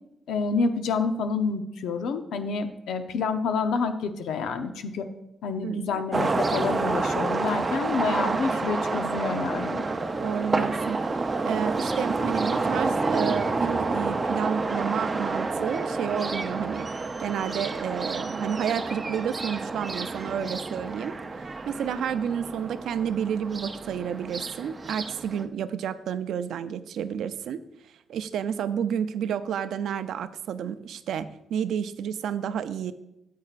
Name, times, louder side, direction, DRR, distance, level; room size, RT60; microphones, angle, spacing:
voice 1, 0.3-5.1 5.4-9.8, left 4 dB, 85° left, 8 dB, 0.7 m, -28 dB
voice 2, 5.6-6.1 8.1-8.6 10.2-16.9 17.2-21.2 21.7-32.9, right 8 dB, 75° right, 12 dB, 0.5 m, -30 dB
sound 1, 6.1-25.4, right 3 dB, 25° right, 0.5 m, -29 dB
13.0 x 8.4 x 2.5 m, 0.87 s
cardioid pair, 130°, 0 cm